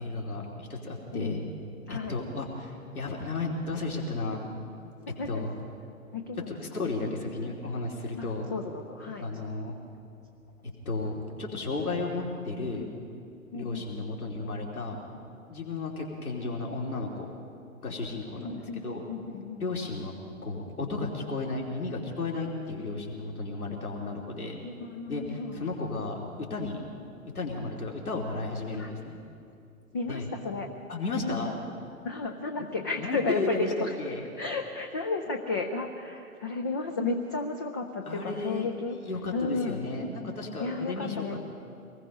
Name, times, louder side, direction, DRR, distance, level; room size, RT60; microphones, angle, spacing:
voice 1, 0.0-1.4 1.9-4.4 5.3-5.5 6.5-8.5 9.2-9.7 10.8-12.9 13.5-15.0 15.5-17.3 17.8-19.0 19.6-20.1 20.4-24.6 25.1-26.8 27.3-29.2 30.1-30.3 30.9-31.5 33.0-33.7 34.0-34.2 38.1-38.7 39.0-41.4, left 3 dB, 75° left, -2 dB, 3.2 m, -33 dB
voice 2, 1.1-1.5 1.9-2.2 5.1-5.4 6.1-6.9 8.2-9.3 13.5-14.0 18.4-19.7 24.6-25.7 28.7-28.9 29.9-30.7 31.3-31.6 32.0-34.0 34.4-39.0 39.3-39.8 40.6-41.4, left 3 dB, 15° left, 3 dB, 0.4 m, -33 dB
25.5 x 19.5 x 5.4 m, 2.6 s
figure-of-eight pair, 115°, 43 cm